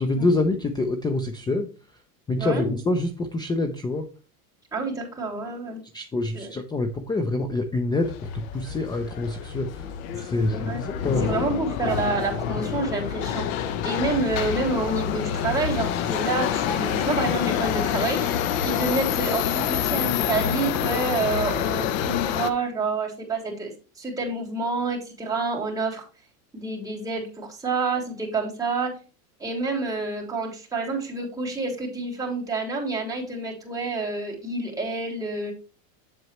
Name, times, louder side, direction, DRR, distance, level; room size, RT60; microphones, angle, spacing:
voice 1, 0.0-1.7 2.3-4.1 5.9-9.9 10.1-11.3, left 2 dB, 10° left, 6 dB, 0.5 m, -26 dB
voice 2, 2.4-2.7 4.7-5.8 6.3-6.5 10.3-10.8 11.2-13.5 13.8-26.0 26.5-28.9 29.4-35.5, right 3 dB, 5° right, -2 dB, 3.3 m, -28 dB
Subway metro underground, 8.0-22.5, left 9 dB, 60° left, 1.0 m, -27 dB
7.8 x 7.7 x 3.0 m, 0.35 s
supercardioid pair, 120°, 47 cm